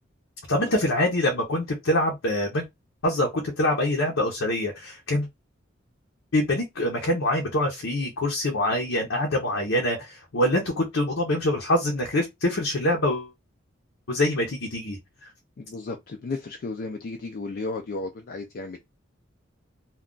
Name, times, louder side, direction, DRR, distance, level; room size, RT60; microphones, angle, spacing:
voice 1, 0.5-2.6 3.0-5.3 6.3-13.3 14.1-15.3, left 1 dB, 70° left, 0.7 m, -25 dB
voice 2, 15.6-18.8, left 3 dB, 45° left, 0.4 m, -34 dB
2.3 x 2.3 x 3.7 m
head